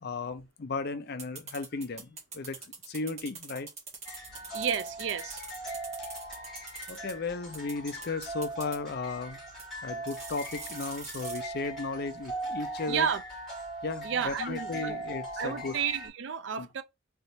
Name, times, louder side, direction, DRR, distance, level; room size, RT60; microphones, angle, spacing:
voice 1, 0.0-2.6 2.9-3.7 6.0-6.1 6.9-9.4 9.8-13.1 13.8-15.8 16.6-16.7, left 3 dB, 55° left, 0.5 m, -35 dB
sound 1, 1.2-7.1 7.5-8.8 9.6-9.7 10.1-11.4, right 4 dB, 35° right, 1.5 m, -43 dB
sound 2, 4.0-16.1, right 1 dB, ahead, 2.5 m, -40 dB
voice 2, 4.5-5.4 12.9-13.2 14.0-15.0 15.4-16.8, right 7 dB, 65° right, 0.4 m, -31 dB
4.0 x 3.4 x 2.7 m
head